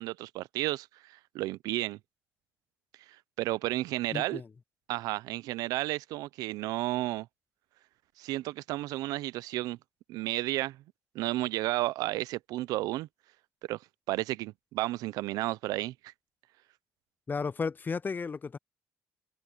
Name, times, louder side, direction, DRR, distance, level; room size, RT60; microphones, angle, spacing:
voice 1, 0.0-2.0 3.4-4.4 4.9-7.3 8.2-9.8 10.1-10.8 11.1-13.1 13.7-13.8 14.1-16.1, right 17 dB, 80° right, 0.6 m, -32 dB
voice 2, 4.1-4.5 17.3-18.6, left 5 dB, 30° left, 0.4 m, -33 dB
supercardioid pair, 65°, 6 cm